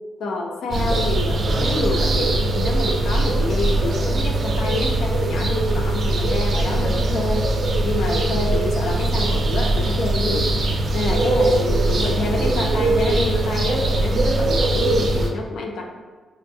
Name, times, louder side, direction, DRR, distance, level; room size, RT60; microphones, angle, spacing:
voice 1, 0.2-7.5 7.8-10.5 10.9-15.8, left 2 dB, 80° left, 1 dB, 0.4 m, -27 dB
sound 1, 0.7-15.3, right 2 dB, 50° right, 0.4 m, -21 dB
4.8 x 2.7 x 2.2 m, 1.4 s
cardioid pair, 120°, 0 cm